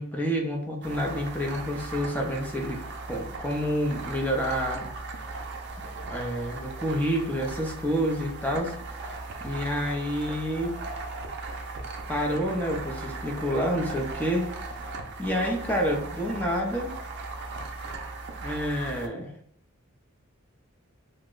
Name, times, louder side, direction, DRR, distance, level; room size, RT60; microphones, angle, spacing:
voice 1, 0.0-2.8 3.1-4.9 6.1-8.7 9.4-10.8 12.1-14.5 15.2-16.9 18.4-19.3, equal, 10° left, 0 dB, 0.5 m, -28 dB
sound 1, 0.8-19.1, right 3 dB, 55° right, 0.5 m, -38 dB
3.0 x 2.1 x 3.7 m, 0.67 s
head